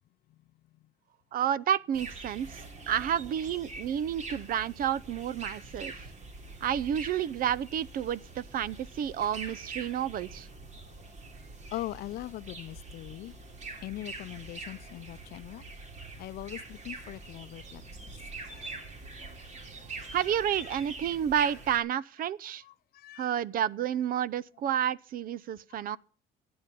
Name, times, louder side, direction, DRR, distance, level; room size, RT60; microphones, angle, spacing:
voice 1, 1.3-6.1 6.6-10.5 20.1-22.6 23.2-26.0, right 9 dB, 60° right, 0.7 m, -30 dB
sound 1, 1.9-21.8, right 3 dB, 45° right, 3.1 m, -44 dB
voice 2, 11.7-13.3 13.8-15.6 16.2-17.8 18.4-18.7 20.4-20.5 22.6-23.4 25.7-25.9, left 15 dB, 70° left, 0.6 m, -41 dB
16.0 x 8.9 x 6.8 m
cardioid pair, 110°, 17 cm